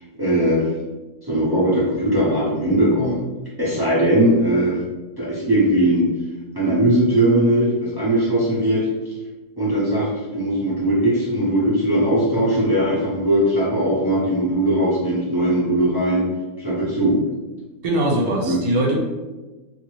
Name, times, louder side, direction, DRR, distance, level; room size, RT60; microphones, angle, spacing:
voice 1, 0.2-0.7 1.2-3.3 3.6-4.8 5.2-6.1 6.5-8.9 9.6-16.3 16.6-17.2 18.4-18.6, right 1 dB, 30° right, -8 dB, 0.4 m, -19 dB
voice 2, 17.8-19.0, right 1 dB, 70° right, -1 dB, 1.0 m, -21 dB
2.6 x 2.6 x 2.9 m, 1.2 s
omnidirectional pair, 1.6 m